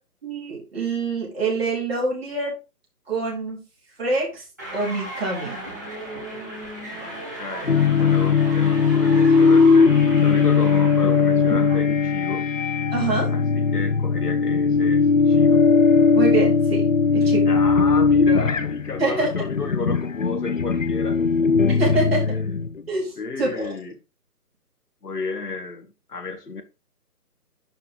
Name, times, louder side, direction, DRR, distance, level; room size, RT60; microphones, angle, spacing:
voice 1, 0.2-2.5 3.1-3.6 4.0-4.4 4.7-5.6 12.9-13.3 16.1-17.5 19.0-19.3 21.7-22.3 22.9-23.7, right 3 dB, 35° right, 4.2 m, -25 dB
sound 1, 4.6-11.8, right 1 dB, 10° right, 1.3 m, -35 dB
voice 2, 7.0-9.9 10.2-12.5 13.3-15.6 17.5-21.2 22.2-22.6 23.2-23.9 25.0-26.6, left 3 dB, 70° left, 1.9 m, -32 dB
sound 2, 7.7-22.8, left 5 dB, 55° left, 0.6 m, -19 dB
sound 3, 17.6-20.0, left 3 dB, 55° right, 2.4 m, -42 dB
11.0 x 4.2 x 3.9 m
hypercardioid pair, 175°, 49 cm